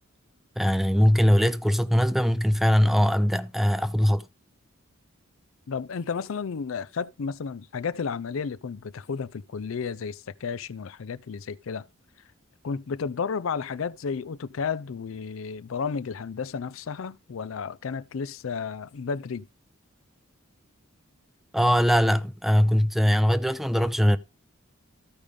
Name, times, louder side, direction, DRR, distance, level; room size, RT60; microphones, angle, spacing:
voice 1, 0.6-4.3 21.5-24.2, equal, ahead, 0.5 m, -21 dB
voice 2, 5.7-11.9 12.6-19.5, left 5 dB, 75° left, 0.5 m, -32 dB
14.0 x 5.1 x 5.0 m
head